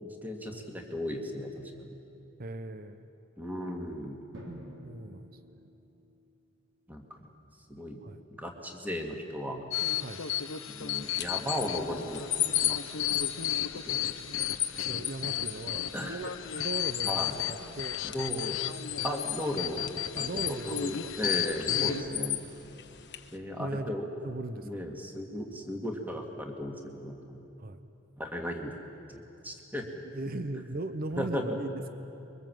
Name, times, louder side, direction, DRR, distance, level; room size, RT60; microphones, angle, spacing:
voice 1, 0.0-1.9 3.4-4.2 6.9-7.3 7.7-8.0 8.4-9.6 10.7-12.2 12.6-13.2 13.7-14.2 15.9-16.2 17.0-17.3 18.0-18.6 19.0-19.9 20.2-22.4 23.3-24.1 24.6-27.4 28.2-28.8 29.1-29.9 31.2-31.5, equal, 10° right, 2 dB, 2.0 m, -36 dB
voice 2, 2.4-3.1 4.8-5.3 8.0-8.2 10.0-10.2 14.7-18.0 20.1-21.1 21.7-22.4 23.6-24.9 27.6-27.8 30.0-31.9, right 2 dB, 45° right, 10 dB, 0.8 m, -38 dB
Drum, 4.3-6.3, right 1 dB, 60° right, 4.2 m, -48 dB
sound 1, 9.7-22.0, left 10 dB, 70° left, 0.8 m, -33 dB
sound 2, 11.0-23.4, left 11 dB, 55° left, 1.1 m, -38 dB
25.0 x 23.0 x 7.7 m, 2.9 s
head